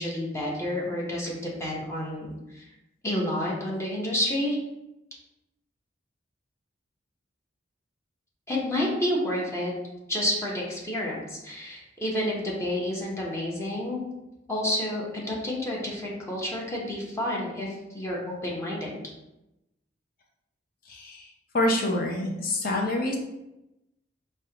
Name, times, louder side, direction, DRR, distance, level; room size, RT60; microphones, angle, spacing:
voice 1, 0.0-2.7 3.0-4.6 8.5-9.7 10.1-14.0 14.5-19.0, left 1 dB, 15° left, -4 dB, 0.8 m, -30 dB
voice 2, 20.9-21.2 21.5-23.2, left 1 dB, 50° left, 0 dB, 0.6 m, -26 dB
5.2 x 2.1 x 2.8 m, 0.92 s
head